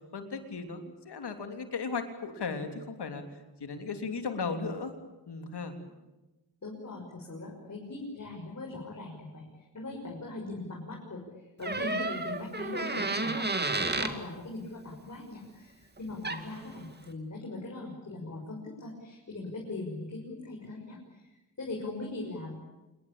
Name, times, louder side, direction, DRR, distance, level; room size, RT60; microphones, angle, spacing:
voice 1, 0.1-3.2 3.6-4.9 5.3-5.7, left 4 dB, 90° left, 6 dB, 3.5 m, -36 dB
voice 2, 6.6-22.6, left 2 dB, 45° left, -2 dB, 6.4 m, -40 dB
Door, 11.6-14.2 16.0-16.1 16.2-16.6, right 2 dB, 25° right, 2.3 m, -31 dB
27.5 x 22.0 x 8.8 m, 1.1 s
wide cardioid pair, 120°, 39 cm